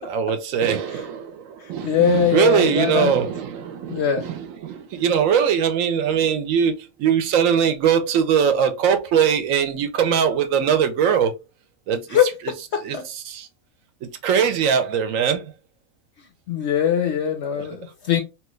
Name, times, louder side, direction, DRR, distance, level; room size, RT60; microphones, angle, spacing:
voice 1, 0.0-11.3 11.9-12.2 12.8-13.5 14.0-15.4 17.6-17.7, right 7 dB, 70° right, 0.9 m, -21 dB
voice 2, 1.8-3.1 3.9-4.3 12.1-12.3 12.7-13.0 16.5-18.2, left 8 dB, 65° left, 0.7 m, -21 dB
3.0 x 2.3 x 3.0 m
omnidirectional pair, 1.5 m